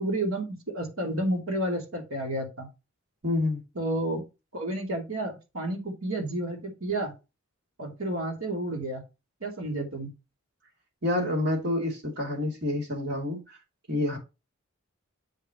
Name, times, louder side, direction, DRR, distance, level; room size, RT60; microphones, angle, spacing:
voice 1, 0.0-2.7 3.7-4.2 4.5-7.1 7.8-9.0 9.4-10.1, right 1 dB, 80° right, 2.8 m, -31 dB
voice 2, 3.2-3.6 11.0-13.6 13.9-14.2, left 2 dB, 50° right, 2.7 m, -28 dB
7.2 x 5.7 x 2.9 m
head